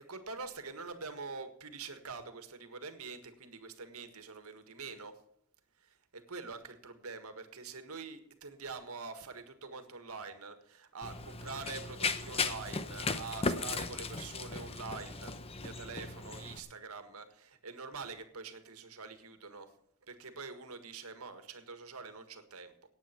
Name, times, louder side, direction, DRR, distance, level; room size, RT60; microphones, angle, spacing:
voice 1, 0.0-5.2 5.8-19.7 20.1-22.7, right 4 dB, 80° right, 8 dB, 1.7 m, -45 dB
Run, 11.0-16.6, left 4 dB, 25° left, 0.8 m, -37 dB
18.0 x 8.2 x 4.5 m, 0.74 s
head